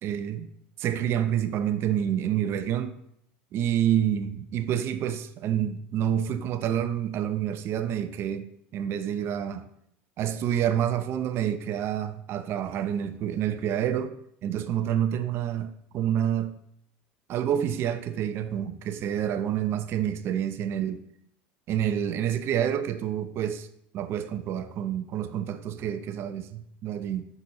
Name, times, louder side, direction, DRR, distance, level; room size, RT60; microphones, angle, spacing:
voice 1, 0.0-0.5 0.8-3.0 3.5-9.7 10.2-14.2 14.4-16.6 17.3-21.0 21.7-23.7 23.9-27.2, right 10 dB, 45° right, 0.6 m, -28 dB
8.1 x 6.9 x 2.9 m
supercardioid pair, 110°, 6 cm